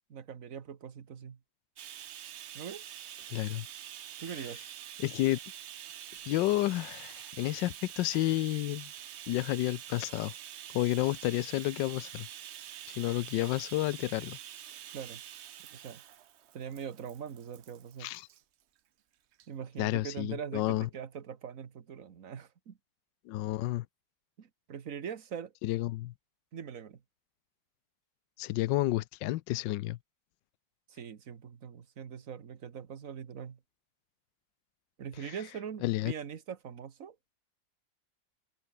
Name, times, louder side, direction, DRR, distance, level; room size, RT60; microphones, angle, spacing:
voice 1, 0.1-1.4 2.5-3.1 4.2-4.6 14.9-15.2 15.7-16.0 16.5-18.1 19.5-22.8 24.4-25.5 26.5-27.0 30.9-33.6 35.0-37.4, right 7 dB, 50° right, 1.7 m, -42 dB
Bathtub (filling or washing), 1.8-18.4 19.3-19.5 19.8-19.9, right 11 dB, 85° right, 0.5 m, -46 dB
voice 2, 3.3-3.7 5.0-5.4 6.3-8.9 9.3-10.3 10.7-12.3 13.0-14.4 18.0-18.3 19.8-20.9 23.3-23.9 25.6-26.1 28.4-30.0 35.8-36.1, left 16 dB, 75° left, 1.3 m, -30 dB
omnidirectional pair, 2.0 m